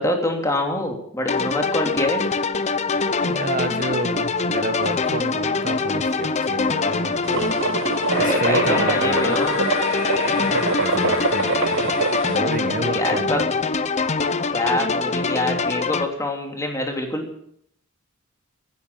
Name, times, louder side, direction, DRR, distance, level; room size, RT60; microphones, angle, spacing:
voice 1, 0.0-2.3 8.1-9.6 12.9-13.4 14.5-17.3, left 1 dB, 15° left, 2 dB, 3.0 m, -25 dB
sound 1, 1.3-16.0, left 4 dB, 35° left, 0.8 m, -24 dB
voice 2, 3.2-9.3 10.3-13.4, right 2 dB, 40° right, 10 dB, 1.4 m, -30 dB
sound 2, 7.2-12.4, right 4 dB, 65° right, 0.9 m, -25 dB
sound 3, 8.1-12.9, left 3 dB, 55° left, 4.2 m, -29 dB
15.5 x 10.5 x 8.8 m, 0.68 s
head